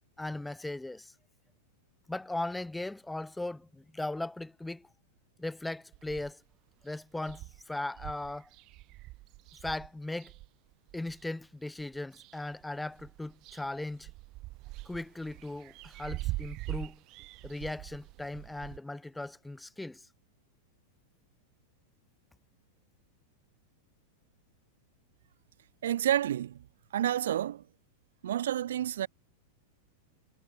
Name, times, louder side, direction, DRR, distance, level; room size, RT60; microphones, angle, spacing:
voice 1, 0.2-1.1 2.1-4.9 5.4-6.4 6.8-8.5 9.6-10.3 10.9-14.1 14.9-17.0 17.4-20.1, left 2 dB, 5° left, 0.4 m, -38 dB
sound 1, 5.9-6.5 6.9-7.0 7.2-11.2 11.8-12.6 12.9-18.8, right 20 dB, 40° right, 2.2 m, -43 dB
voice 2, 25.8-26.6 26.9-27.6 28.2-29.1, right 11 dB, 85° right, 0.8 m, -29 dB
supercardioid pair, 145°, 0 cm